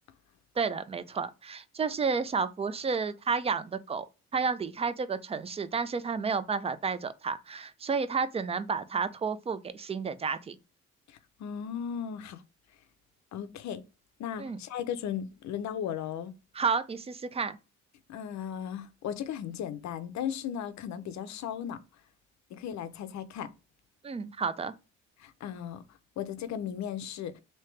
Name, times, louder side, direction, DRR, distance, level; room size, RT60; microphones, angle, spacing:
voice 1, 0.6-4.1 4.3-10.5 14.4-14.6 16.5-17.6 24.0-24.7, right 5 dB, 20° right, 0.3 m, -31 dB
voice 2, 11.1-12.4 13.3-13.8 14.2-16.3 18.1-21.8 22.5-23.5 25.2-25.8 26.2-27.4, left 9 dB, 65° left, 0.5 m, -36 dB
3.3 x 2.8 x 3.1 m
cardioid pair, 90°, 30 cm